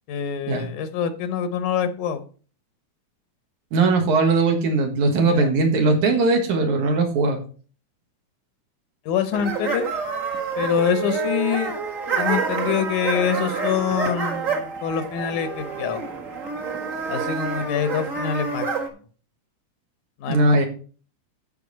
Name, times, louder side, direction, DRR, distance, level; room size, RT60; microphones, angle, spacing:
voice 1, 0.1-2.2 5.2-5.5 9.1-9.9 10.6-11.7 12.2-16.0 17.1-18.7 20.2-20.7, left 8 dB, 85° left, 10 dB, 2.5 m, -25 dB
voice 2, 3.7-7.4 20.3-20.7, right 3 dB, 80° right, 3 dB, 2.9 m, -19 dB
sound 1, 9.3-18.9, right 4 dB, 40° right, 1.3 m, -27 dB
14.5 x 5.3 x 4.1 m, 0.40 s
omnidirectional pair, 3.4 m